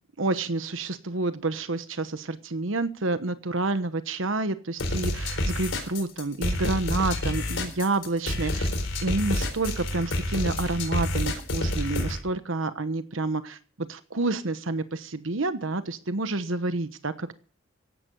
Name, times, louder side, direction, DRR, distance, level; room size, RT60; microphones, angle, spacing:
voice 1, 0.2-8.7 9.0-13.6 13.9-17.3, right 2 dB, 80° right, 11 dB, 1.1 m, -29 dB
sound 1, 4.8-12.2, left 1 dB, 80° left, 4.2 m, -28 dB
16.0 x 11.0 x 5.3 m, 0.42 s
head